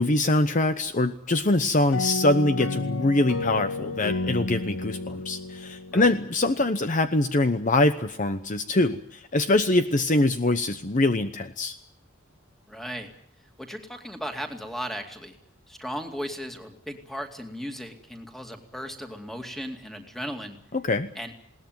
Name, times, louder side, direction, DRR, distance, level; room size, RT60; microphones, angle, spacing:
voice 1, 0.0-11.8 20.7-21.1, left 2 dB, 40° left, 10 dB, 0.9 m, -23 dB
sound 1, 1.9-6.6, left 2 dB, 80° left, 1.6 m, -31 dB
voice 2, 12.7-13.1 13.6-15.4 15.7-20.6 21.1-21.3, equal, ahead, 5 dB, 2.4 m, -36 dB
20.5 x 18.5 x 9.4 m, 0.69 s
head